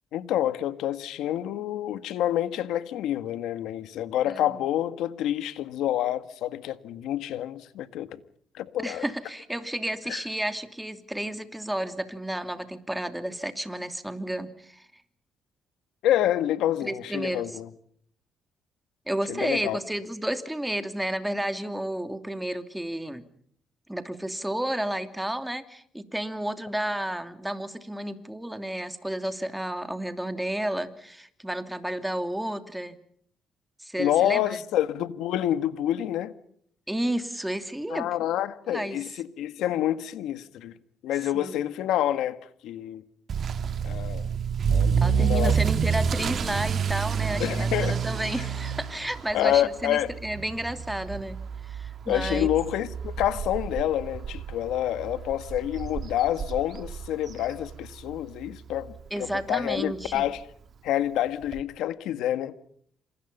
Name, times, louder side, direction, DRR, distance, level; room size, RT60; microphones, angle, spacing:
voice 1, 0.1-8.2 8.5-9.0 10.1-10.2 16.0-17.7 19.3-19.8 34.0-36.3 37.9-40.7 41.0-43.0 43.8-44.3 44.7-45.6 47.4-48.0 48.4-48.5 49.3-50.1 52.1-60.4 60.8-62.5, left 12 dB, 90° left, 1.7 m, -28 dB
voice 2, 4.3-4.6 8.8-14.9 16.8-17.5 19.1-23.2 23.9-33.0 33.8-34.6 36.9-38.1 38.7-39.0 41.3-41.6 45.0-52.5 59.1-60.2, right 1 dB, 5° right, 2.8 m, -32 dB
Motor vehicle (road) / Accelerating revving vroom, 43.3-58.1 58.4-58.8 59.3-59.4 59.7-59.8 60.1-60.2 61.5-61.6, right 7 dB, 55° right, 2.3 m, -29 dB
28.0 x 26.5 x 5.6 m
cardioid pair, 90°, 0 cm